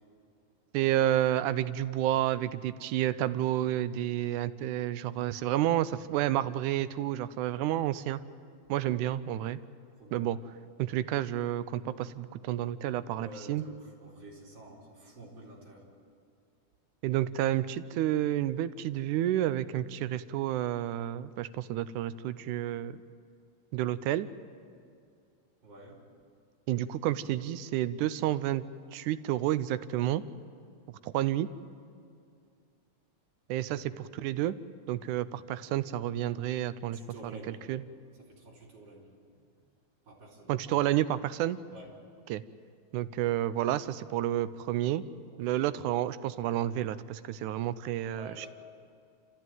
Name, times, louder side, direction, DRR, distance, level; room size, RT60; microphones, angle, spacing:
voice 1, 0.7-8.2 8.7-9.6 10.1-10.4 10.8-13.6 17.0-23.0 23.7-24.3 26.7-28.6 28.9-30.2 30.9-31.5 33.5-34.6 34.9-37.0 37.5-37.8 40.5-41.6 42.3-42.4 42.9-45.0 45.4-48.5, right 13 dB, 90° right, 14 dB, 2.2 m, -30 dB
voice 2, 10.0-10.3 13.2-15.9 25.6-26.0 36.9-37.6 38.3-39.4 40.0-40.5 41.7-41.9 45.3-45.6 48.2-48.5, right 2 dB, 50° right, -4 dB, 5.3 m, -49 dB
28.5 x 14.5 x 9.3 m, 2.3 s
omnidirectional pair, 3.4 m